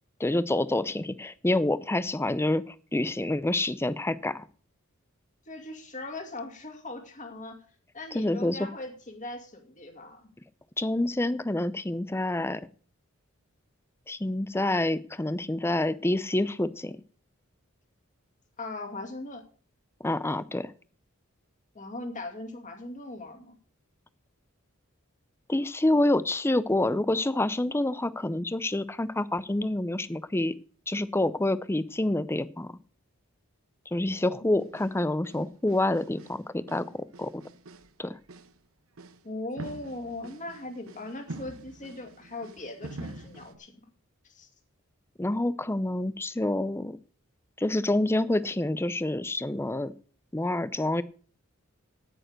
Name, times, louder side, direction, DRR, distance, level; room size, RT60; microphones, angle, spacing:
voice 1, 0.2-4.4 8.1-8.6 10.8-12.6 14.1-17.0 20.0-20.7 25.5-30.5 30.9-32.7 33.9-37.4 38.0-38.2 45.2-47.0 47.6-49.9 50.3-51.0, left 1 dB, 10° left, 16 dB, 0.5 m, -27 dB
voice 2, 5.5-7.6 7.9-10.2 18.6-19.4 21.7-23.6 34.4-34.7 39.2-43.7 44.2-44.5, left 2 dB, 35° left, 4 dB, 2.4 m, -39 dB
sound 1, 34.6-35.0 35.2-36.4 36.7-37.9 38.2-38.6 39.0-39.2 39.6-43.6, right 2 dB, 75° right, 1.0 m, -45 dB
9.0 x 9.0 x 6.5 m, 0.42 s
head